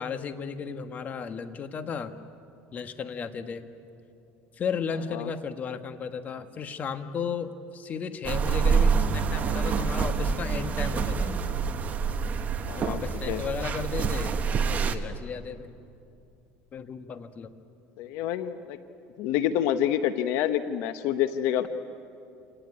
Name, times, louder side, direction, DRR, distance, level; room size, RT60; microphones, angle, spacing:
voice 1, 0.0-2.2 2.7-3.7 4.5-11.4 12.8-14.4 14.7-15.8 16.7-17.5, left 6 dB, 35° left, 9 dB, 1.4 m, -34 dB
sound 1, 8.2-15.0, right 5 dB, 35° right, 1.3 m, -26 dB
voice 2, 12.7-13.4 18.0-18.8 19.2-21.7, left 11 dB, 75° left, 11 dB, 1.0 m, -27 dB
26.5 x 18.5 x 9.7 m, 2.6 s
supercardioid pair, 115°, 4 cm